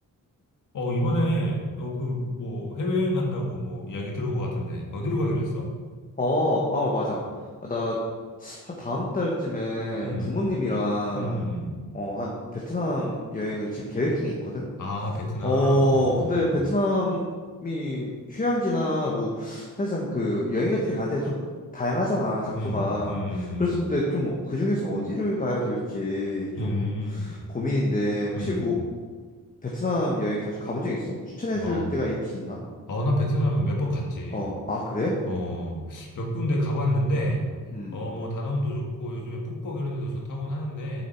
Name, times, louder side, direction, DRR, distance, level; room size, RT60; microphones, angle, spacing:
voice 1, 0.7-5.7 10.0-10.4 11.1-11.8 14.8-16.5 22.6-23.9 26.6-27.3 28.3-28.7 31.5-31.9 32.9-34.5 35.3-37.4 37.9-41.0, left 1 dB, 75° left, 0 dB, 1.8 m, -28 dB
voice 2, 6.2-7.2 7.6-8.0 8.4-11.4 11.9-14.7 15.4-17.2 17.6-21.4 21.7-28.8 29.6-32.6 34.3-35.2 37.7-38.0, left 1 dB, 25° left, -3 dB, 1.2 m, -27 dB
7.3 x 7.1 x 4.5 m, 1.5 s
wide cardioid pair, 140°, 32 cm